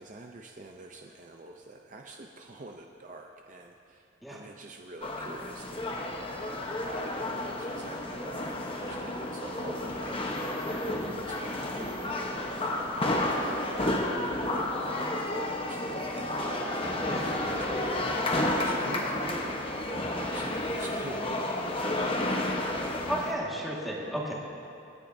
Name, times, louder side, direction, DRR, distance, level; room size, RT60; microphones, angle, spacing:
voice 1, 0.0-8.4 8.7-18.1 18.4-19.6 20.1-21.6, right 2 dB, 40° right, 2 dB, 0.5 m, -45 dB
sound 1, 5.0-23.3, left 1 dB, 25° left, 0.9 m, -31 dB
voice 2, 23.0-24.3, right 1 dB, ahead, -5 dB, 1.7 m, -33 dB
27.0 x 10.0 x 2.7 m, 2.7 s
head